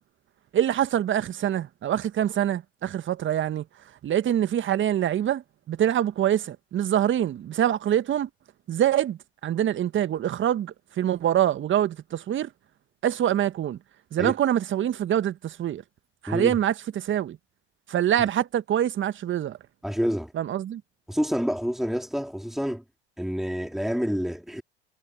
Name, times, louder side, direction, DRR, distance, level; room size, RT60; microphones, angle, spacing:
voice 1, 0.5-3.6 4.0-8.3 8.7-12.5 13.0-13.8 14.1-15.8 16.2-17.4 17.9-19.6 20.3-20.8, right 10 dB, 40° right, 1.7 m, -25 dB
voice 2, 19.8-20.3 21.1-22.8 23.2-24.6, equal, ahead, 2.6 m, -28 dB
hypercardioid pair, 75°, 30 cm